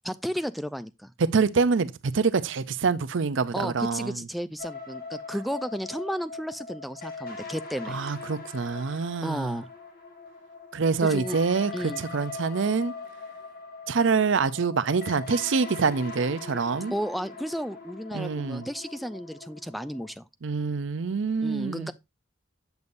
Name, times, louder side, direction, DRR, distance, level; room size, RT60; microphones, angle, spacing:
voice 1, 0.0-1.1 3.5-8.0 9.2-9.7 11.0-11.4 11.7-12.0 16.9-20.3 21.4-21.9, equal, ahead, 0.4 m, -33 dB
voice 2, 1.2-4.2 7.9-9.5 10.7-11.7 12.0-12.9 13.9-16.9 18.1-18.6 20.4-21.9, right 5 dB, 65° right, 0.6 m, -25 dB
sound 1, 4.6-20.1, left 4 dB, 50° left, 1.8 m, -41 dB
8.0 x 7.1 x 2.6 m
head